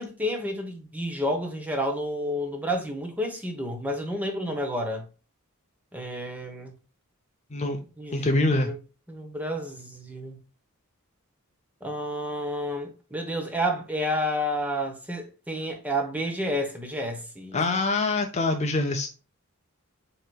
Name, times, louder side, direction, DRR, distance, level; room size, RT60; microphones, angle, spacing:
voice 1, 0.0-5.1 5.9-6.7 8.0-8.8 9.1-10.4 11.8-17.8, equal, 5° right, 0.8 m, -30 dB
voice 2, 8.1-8.7 17.5-19.1, left 2 dB, 30° left, 0.5 m, -24 dB
7.7 x 2.8 x 2.2 m
head